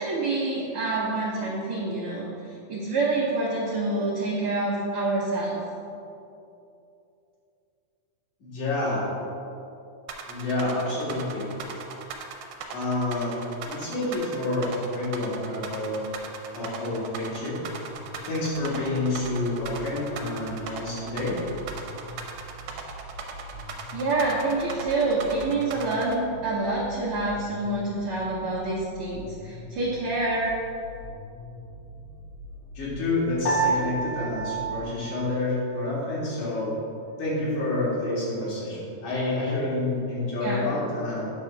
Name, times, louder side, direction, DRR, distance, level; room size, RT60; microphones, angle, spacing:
voice 1, 0.0-2.3 2.7-5.6 23.9-30.5 40.4-40.7, right 2 dB, 65° right, -6 dB, 1.5 m, -27 dB
voice 2, 8.4-9.1 10.3-11.5 12.7-13.4 13.7-16.1 16.5-17.6 18.3-21.4 32.8-36.7 37.2-41.3, left 2 dB, 70° left, -7 dB, 3.5 m, -28 dB
sound 1, 10.1-26.2, right 6 dB, 90° right, 2.2 m, -38 dB
sound 2, 17.9-34.8, left 1 dB, 90° left, 2.5 m, -44 dB
Piano, 33.5-36.0, right 3 dB, 55° left, 2.1 m, -29 dB
9.1 x 3.6 x 5.8 m, 2.7 s
omnidirectional pair, 3.6 m